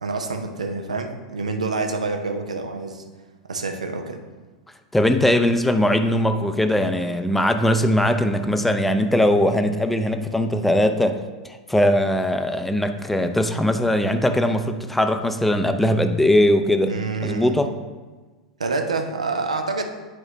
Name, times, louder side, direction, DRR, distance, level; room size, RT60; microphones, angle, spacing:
voice 1, 0.0-3.0 3.5-4.2 16.9-17.6 18.6-19.8, right 3 dB, 75° right, 5 dB, 0.7 m, -27 dB
voice 2, 4.9-11.2 11.4-16.9 17.2-17.7, left 1 dB, 5° left, 7 dB, 0.5 m, -20 dB
9.0 x 4.8 x 3.3 m, 1.3 s
figure-of-eight pair, 90°, 4 cm